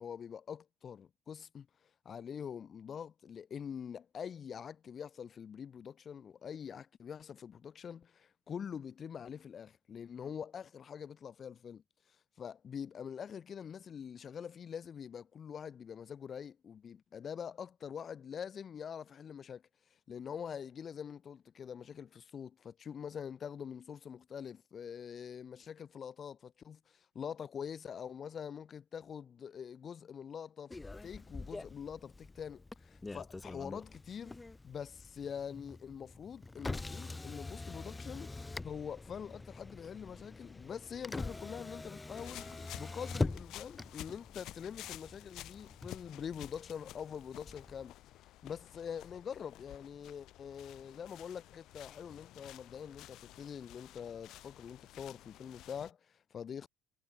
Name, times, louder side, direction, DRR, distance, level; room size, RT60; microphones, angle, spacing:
voice 1, 0.0-1.7 2.0-11.8 12.4-19.6 20.1-30.7 31.0-34.4 34.6-38.3 38.6-47.9 48.4-56.7, left 7 dB, 25° left, 2.6 m, -45 dB
Motor vehicle (road), 30.7-47.9, left 3 dB, 10° left, 1.5 m, -44 dB
sound 1, 42.2-55.9, left 15 dB, 45° left, 1.1 m, -52 dB
cardioid pair, 175°, 0 cm